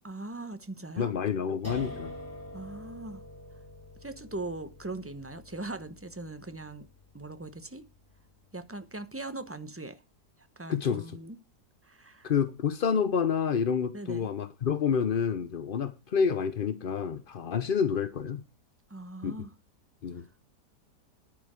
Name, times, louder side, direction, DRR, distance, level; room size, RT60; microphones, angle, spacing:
voice 1, 0.0-1.1 2.5-3.2 4.0-6.9 7.1-7.9 8.5-10.0 10.6-11.4 11.8-12.3 13.9-14.3 18.9-19.5, right 2 dB, 10° right, 0.8 m, -40 dB
voice 2, 1.0-2.1 10.7-11.1 12.2-18.4 19.2-19.5 20.0-20.3, left 7 dB, 50° left, 0.7 m, -28 dB
sound 1, 1.6-8.6, left 1 dB, 10° left, 4.5 m, -46 dB
11.0 x 9.0 x 5.1 m
omnidirectional pair, 1.7 m